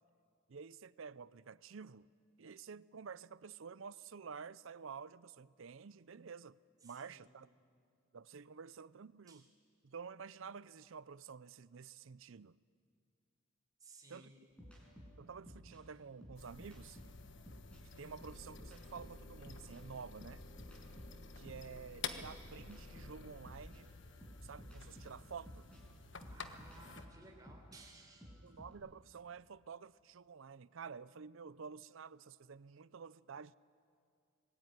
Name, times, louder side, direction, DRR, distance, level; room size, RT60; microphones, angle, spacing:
voice 1, 0.5-2.1 2.4-7.5 8.1-9.4 9.8-12.6 14.1-14.3 15.2-17.0 18.0-20.4 21.4-23.9 24.4-25.7 28.4-33.6, right 6 dB, 70° right, 0.5 m, -50 dB
voice 2, 6.8-7.4 9.3-9.5 13.8-14.5 26.3-28.4, right 2 dB, 20° right, 3.9 m, -59 dB
sound 1, 14.6-17.8 18.2-21.7 22.2-28.7, equal, 5° left, 6.0 m, -56 dB
sound 2, 16.4-27.1, left 5 dB, 60° left, 1.3 m, -51 dB
25.5 x 20.5 x 9.6 m
head